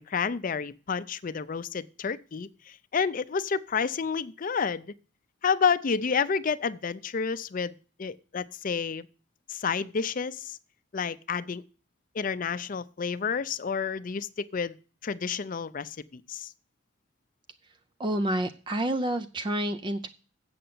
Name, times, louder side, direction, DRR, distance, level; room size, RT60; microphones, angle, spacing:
voice 1, 0.0-4.9 5.4-9.1 9.5-10.6 10.9-11.6 12.1-14.8 15.0-16.5, left 5 dB, 45° left, 0.5 m, -30 dB
voice 2, 18.0-20.1, right 1 dB, 25° right, 0.4 m, -29 dB
7.9 x 6.7 x 7.7 m
head